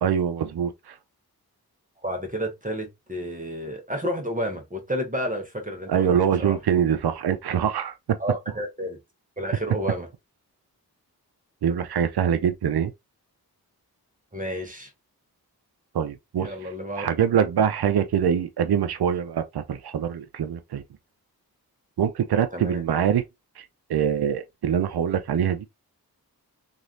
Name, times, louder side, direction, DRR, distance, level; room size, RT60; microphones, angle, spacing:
voice 1, 0.0-0.9 5.9-8.2 11.6-12.9 15.9-16.5 17.0-20.8 22.0-23.2 23.6-23.7 23.9-25.7, right 8 dB, 80° right, 0.6 m, -24 dB
voice 2, 2.0-6.6 8.2-9.0 9.4-10.1 14.3-14.9 16.4-17.1 22.5-22.8, equal, 20° right, 1.1 m, -31 dB
3.1 x 2.6 x 2.6 m
cardioid pair, 45°, 39 cm